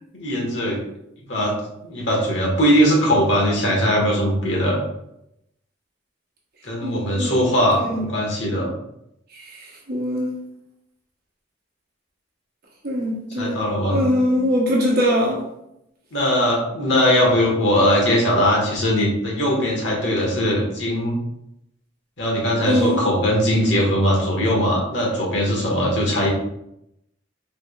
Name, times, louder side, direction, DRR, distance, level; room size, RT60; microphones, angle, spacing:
voice 1, 0.1-0.8 1.3-1.5 1.8-4.8 6.6-8.7 13.4-14.0 16.1-21.2 22.2-26.3, equal, 70° left, -2 dB, 1.4 m, -20 dB
voice 2, 6.8-7.3 7.7-8.1 9.3-10.3 12.8-13.6 13.9-15.4 22.6-23.0, equal, 55° right, -3 dB, 0.9 m, -22 dB
4.9 x 3.5 x 2.4 m, 0.81 s
head